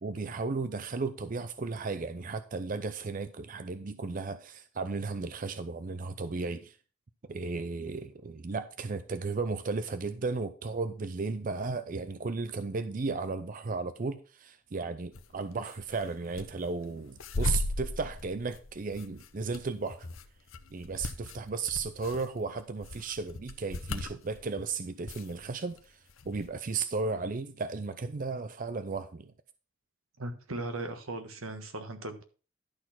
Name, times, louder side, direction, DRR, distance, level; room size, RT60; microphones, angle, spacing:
voice 1, 0.0-6.8 7.3-20.1 20.7-26.0 26.2-29.3, right 4 dB, 40° right, 0.5 m, -35 dB
sound 1, 15.2-15.3 15.6-16.5 16.8-24.6 25.1-25.8 26.1-26.5, left 2 dB, 75° left, 0.8 m, -36 dB
voice 2, 30.2-32.2, right 2 dB, 90° right, 1.4 m, -38 dB
11.5 x 4.2 x 5.7 m
head